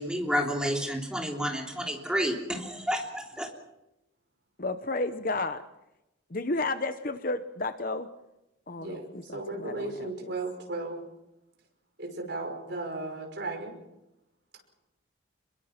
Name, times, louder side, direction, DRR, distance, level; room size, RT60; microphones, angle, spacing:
voice 1, 0.0-3.5, equal, 5° right, 1 dB, 3.3 m, -30 dB
voice 2, 4.6-5.6 6.3-8.1 8.7-10.3, left 2 dB, 45° left, 10 dB, 0.9 m, -32 dB
voice 3, 8.8-11.0 12.0-13.7, right 2 dB, 55° right, 3 dB, 5.7 m, -35 dB
27.0 x 22.0 x 6.0 m, 0.92 s
head